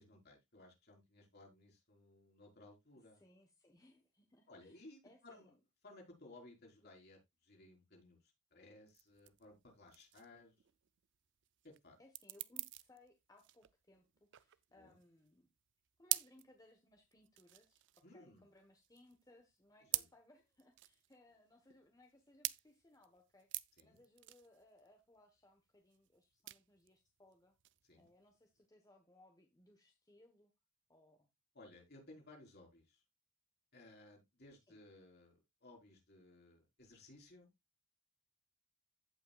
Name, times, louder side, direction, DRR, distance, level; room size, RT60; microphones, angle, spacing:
voice 1, 0.0-3.2 4.5-5.5 5.8-10.5 11.6-12.0 14.8-15.0 18.0-18.4 19.8-20.0 23.8-24.0 27.9-28.1 31.5-33.0 33.7-37.5, left 2 dB, 45° left, 0 dB, 4.1 m, -60 dB
voice 2, 3.1-5.6 6.8-6.9 12.0-15.5 16.0-27.5 28.0-30.5 30.9-31.3 34.7-34.8, left 1 dB, 15° left, 4 dB, 1.1 m, -66 dB
sound 1, 8.9-28.7, right 18 dB, 55° right, 0.4 m, -46 dB
16.0 x 5.7 x 2.3 m, 0.20 s
head